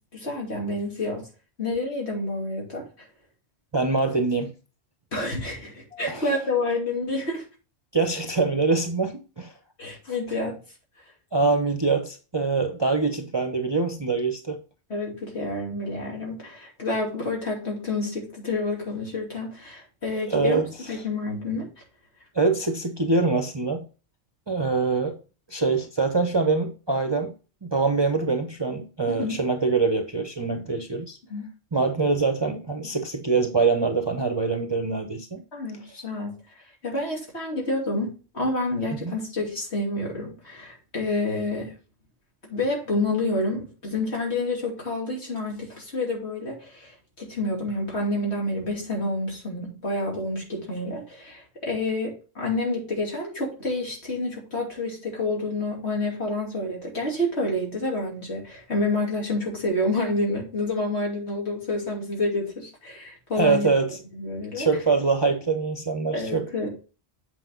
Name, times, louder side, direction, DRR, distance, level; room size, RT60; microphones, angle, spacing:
voice 1, 0.1-1.3 1.6-2.9 5.1-7.4 9.8-10.6 14.9-21.7 29.1-29.4 31.3-31.5 35.5-36.4 36.8-41.7 42.4-63.7 64.1-64.7 66.1-66.7, left 2 dB, 75° left, 3.1 m, -28 dB
voice 2, 3.7-4.5 5.9-6.4 7.9-9.5 11.3-14.6 20.0-20.6 22.3-23.9 24.5-25.2 25.5-27.3 27.6-31.2 31.7-35.4 39.0-39.1 63.4-64.0 64.5-66.5, right 4 dB, 25° right, 0.7 m, -24 dB
8.1 x 5.0 x 3.7 m
omnidirectional pair, 1.1 m